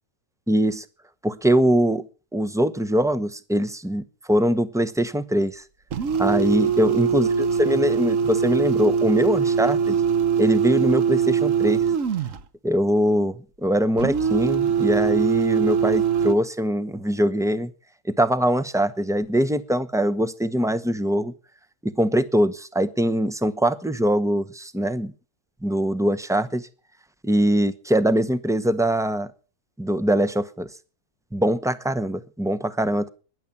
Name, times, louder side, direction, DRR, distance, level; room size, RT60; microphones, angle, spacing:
voice 1, 0.5-0.8 1.2-2.0 2.3-5.6 6.2-10.0 10.4-11.8 12.6-17.7 18.0-21.3 21.8-25.1 25.6-26.6 27.2-29.3 29.8-30.7 31.3-33.1, equal, 5° right, 11 dB, 0.5 m, -22 dB
sound 1, 5.9-12.4 14.0-16.3, right 7 dB, 55° right, 1.4 m, -22 dB
15.5 x 11.0 x 7.1 m, 0.37 s
omnidirectional pair, 1.7 m